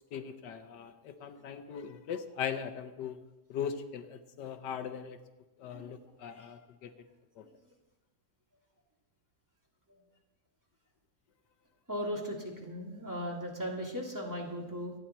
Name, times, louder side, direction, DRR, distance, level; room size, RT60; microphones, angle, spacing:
voice 1, 0.1-3.2 3.5-5.2 5.6-7.1 7.4-7.5, left 8 dB, 85° left, 9 dB, 1.5 m, -39 dB
voice 2, 11.9-14.9, equal, 10° right, -3 dB, 2.7 m, -37 dB
27.0 x 9.0 x 4.3 m, 1.1 s
omnidirectional pair, 1.8 m